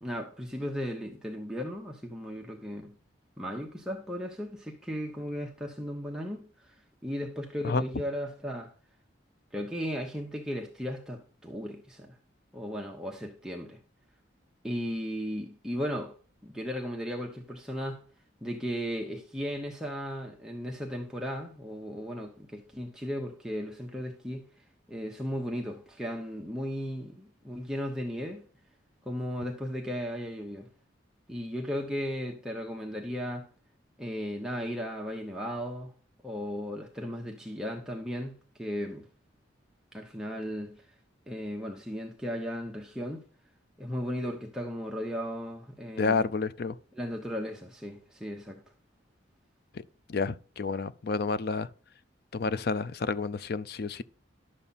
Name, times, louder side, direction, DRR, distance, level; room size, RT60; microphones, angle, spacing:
voice 1, 0.0-3.0 3.4-6.8 7.0-8.7 9.5-12.1 12.5-13.8 14.6-16.1 16.4-18.0 18.4-24.4 24.9-28.4 29.1-30.7 31.3-33.5 34.0-35.9 36.2-39.1 39.9-40.9 41.3-43.2 43.8-46.2 46.9-48.6, equal, 5° right, 0.9 m, -36 dB
voice 2, 46.0-46.8 50.1-51.7 52.3-54.0, left 4 dB, 50° left, 0.4 m, -29 dB
11.0 x 7.1 x 4.1 m
head